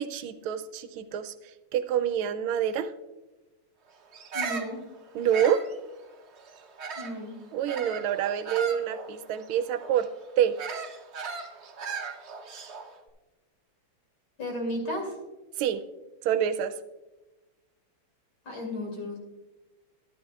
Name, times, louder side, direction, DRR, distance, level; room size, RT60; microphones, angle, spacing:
voice 1, 0.0-1.3 1.7-2.9 5.1-5.6 7.5-10.1 10.4-10.5 15.6-15.8 16.2-16.7, right 9 dB, 80° right, 11 dB, 1.4 m, -27 dB
Bird vocalization bird call bird song, 4.1-7.2 7.7-13.0, right 5 dB, 60° right, 0.7 m, -38 dB
voice 2, 4.3-4.8 7.0-7.4 14.4-15.2 18.4-19.2, left 1 dB, 55° left, 1 dB, 3.1 m, -33 dB
13.0 x 11.5 x 2.3 m, 1.1 s
omnidirectional pair, 2.3 m